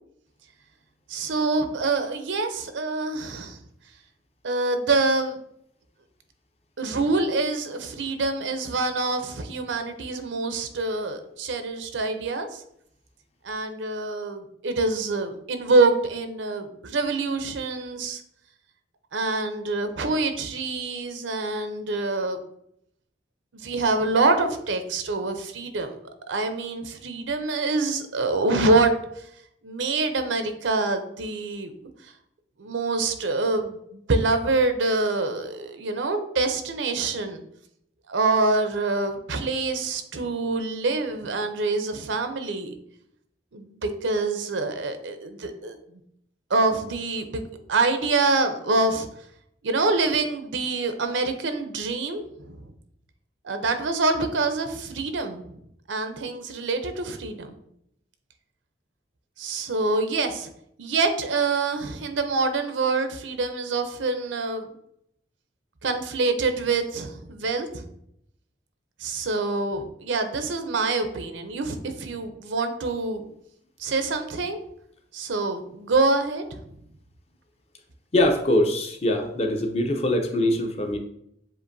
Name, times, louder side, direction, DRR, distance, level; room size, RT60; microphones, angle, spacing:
voice 1, 1.1-3.6 4.4-5.4 6.8-12.6 13.4-18.2 19.1-22.4 23.6-26.0 26.3-28.9 29.6-31.7 32.6-37.4 38.1-42.8 43.5-45.7 46.5-47.4 47.7-49.1 49.6-52.7 53.4-55.6 55.9-57.6 59.4-60.5 60.8-64.7 65.8-67.8 69.0-73.2 73.8-74.6 75.1-76.6, right 3 dB, 85° right, 8 dB, 0.6 m, -25 dB
voice 2, 78.1-81.0, left 1 dB, 35° left, 4 dB, 0.6 m, -23 dB
7.4 x 2.5 x 2.6 m, 0.73 s
head